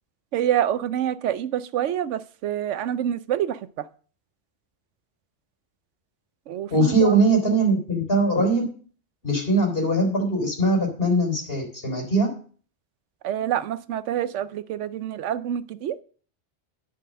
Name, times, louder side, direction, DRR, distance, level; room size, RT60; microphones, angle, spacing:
voice 1, 0.3-3.9 6.5-7.1 13.2-16.0, right 10 dB, 90° right, 15 dB, 1.0 m, -27 dB
voice 2, 6.7-8.7 9.2-12.3, right 2 dB, 55° left, 1 dB, 3.8 m, -21 dB
10.0 x 5.6 x 6.5 m, 0.42 s
omnidirectional pair, 1.2 m